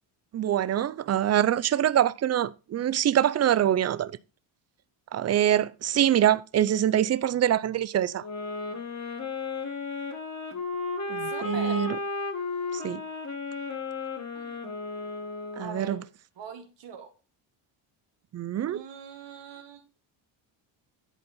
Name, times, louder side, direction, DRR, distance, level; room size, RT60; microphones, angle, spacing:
voice 1, 0.3-4.1 5.1-8.2 11.1-12.0 12.7-13.0 15.6-16.0 18.3-18.8, right 11 dB, 35° right, 0.5 m, -24 dB
sound 1, 8.2-16.0, left 3 dB, 35° left, 2.0 m, -34 dB
voice 2, 11.3-11.8 14.3-14.6 15.6-16.0 16.4-17.1 18.7-19.8, right 7 dB, 60° right, 2.0 m, -42 dB
11.0 x 4.2 x 5.5 m
cardioid pair, 105°, 49 cm